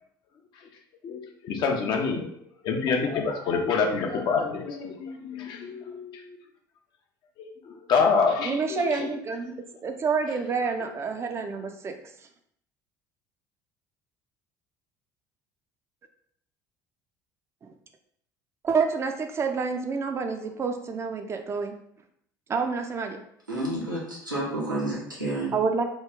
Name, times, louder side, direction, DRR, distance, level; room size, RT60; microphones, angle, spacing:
voice 1, 1.4-2.3 2.6-6.2 7.9-9.1, left 5 dB, 45° left, 2 dB, 0.6 m, -26 dB
voice 2, 8.4-9.5 9.8-11.9 18.6-21.7 22.5-23.2 25.5-25.9, right 5 dB, 25° right, 5 dB, 0.5 m, -28 dB
voice 3, 23.5-25.5, right 1 dB, 90° right, -6 dB, 0.9 m, -30 dB
3.0 x 2.4 x 3.5 m, 0.71 s
figure-of-eight pair, 60°, 10 cm